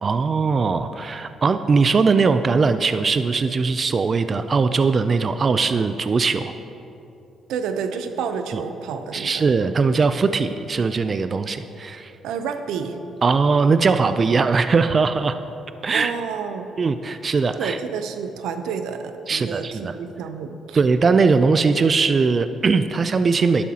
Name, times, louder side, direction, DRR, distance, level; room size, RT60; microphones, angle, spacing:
voice 1, 0.0-6.5 8.5-8.6 9.1-12.1 13.2-15.4 15.8-16.1 16.8-17.8 19.3-19.9 20.7-23.6, right 4 dB, 40° right, 10 dB, 0.4 m, -20 dB
voice 2, 7.5-9.5 12.2-13.0 15.9-16.7 17.6-20.8, right 6 dB, 90° right, 8 dB, 0.6 m, -29 dB
12.0 x 11.0 x 2.9 m, 2.8 s
cardioid pair, 90°, 0 cm